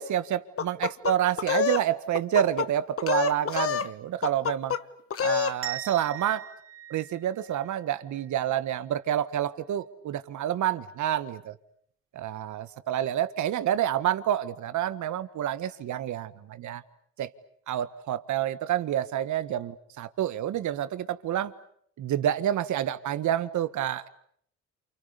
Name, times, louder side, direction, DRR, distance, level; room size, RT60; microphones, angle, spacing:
voice 1, 0.0-4.7 5.2-6.5 6.9-11.5 12.1-16.8 17.2-17.3 17.7-21.5 22.0-24.1, right 11 dB, 75° right, 1.7 m, -28 dB
sound 1, 0.6-1.8 2.1-2.7 3.0-3.9 4.2-4.8 5.1-5.6, left 7 dB, 50° left, 1.4 m, -27 dB
sound 2, 5.6-8.4, right 10 dB, 45° right, 3.8 m, -40 dB
29.5 x 28.5 x 6.9 m
cardioid pair, 90°, 30 cm